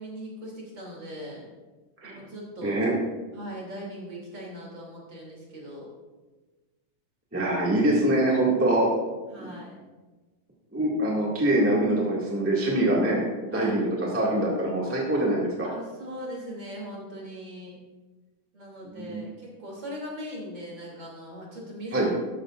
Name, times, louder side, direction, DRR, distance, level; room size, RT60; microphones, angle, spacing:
voice 1, 0.0-1.5 2.0-2.8 3.3-5.9 7.3-7.5 9.3-9.8 13.5-13.8 15.6-17.7 18.5-22.1, equal, 35° right, -3 dB, 3.1 m, -40 dB
voice 2, 2.6-2.9 7.3-8.9 9.4-9.5 10.7-13.2 13.5-15.7 18.8-19.2 21.9-22.1, right 1 dB, 5° right, -4 dB, 1.1 m, -24 dB
13.5 x 11.5 x 2.5 m, 1.2 s
omnidirectional pair, 3.8 m